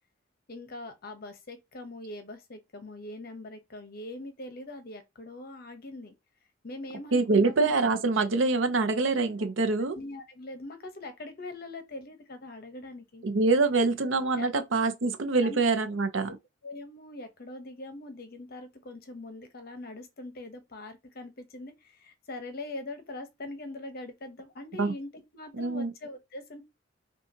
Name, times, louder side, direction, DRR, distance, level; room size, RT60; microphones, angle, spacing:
voice 1, 0.5-6.1 6.6-7.7 9.9-13.3 14.4-14.5 15.4-15.6 16.3-16.4 16.6-26.6, left 2 dB, 50° left, 0.8 m, -42 dB
voice 2, 7.1-10.0 13.2-16.3 24.8-24.9 25.6-25.9, right 3 dB, 65° right, 0.6 m, -25 dB
5.5 x 2.4 x 2.7 m
head